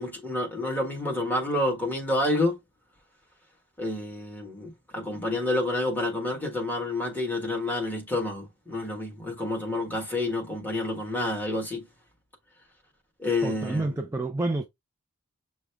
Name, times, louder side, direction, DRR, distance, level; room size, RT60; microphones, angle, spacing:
voice 1, 0.0-2.6 3.8-11.9 13.2-13.9, left 2 dB, 10° left, 1.4 m, -29 dB
voice 2, 13.4-14.7, right 2 dB, 10° right, 0.3 m, -28 dB
6.2 x 2.1 x 3.4 m
head